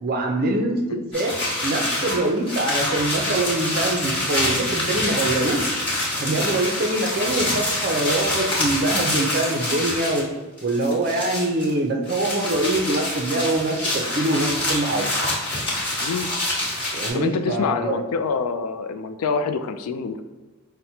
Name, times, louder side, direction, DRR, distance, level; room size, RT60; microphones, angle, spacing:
voice 1, 0.0-5.6 6.1-10.3 10.6-15.1 16.9-18.0, right 2 dB, 40° right, 2 dB, 0.5 m, -24 dB
sound 1, 1.1-10.3 10.6-11.7 12.1-17.1, left 1 dB, 20° left, 1.3 m, -26 dB
voice 2, 17.1-20.2, left 5 dB, 85° left, 9 dB, 0.3 m, -26 dB
5.7 x 2.1 x 2.7 m, 1.3 s
head